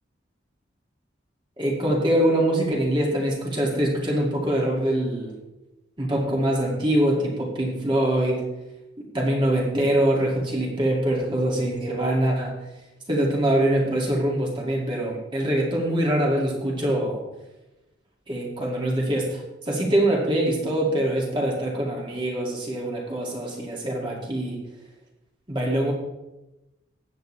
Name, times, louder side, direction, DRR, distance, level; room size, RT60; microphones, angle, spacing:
voice 1, 1.6-5.3 6.0-8.5 9.1-12.6 13.1-17.2 18.3-19.4 19.7-24.6 25.5-25.9, right 1 dB, 25° right, -2 dB, 2.4 m, -24 dB
15.0 x 9.4 x 3.3 m, 0.98 s
head